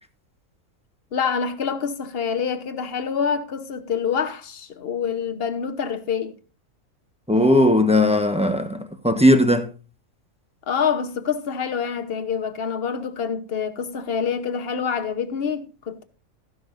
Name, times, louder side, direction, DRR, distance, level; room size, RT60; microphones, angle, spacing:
voice 1, 1.1-6.3 10.7-16.0, left 6 dB, 45° left, 1.2 m, -26 dB
voice 2, 7.3-8.8 9.0-9.7, left 1 dB, 5° right, 0.9 m, -17 dB
14.0 x 11.0 x 2.6 m
omnidirectional pair, 1.5 m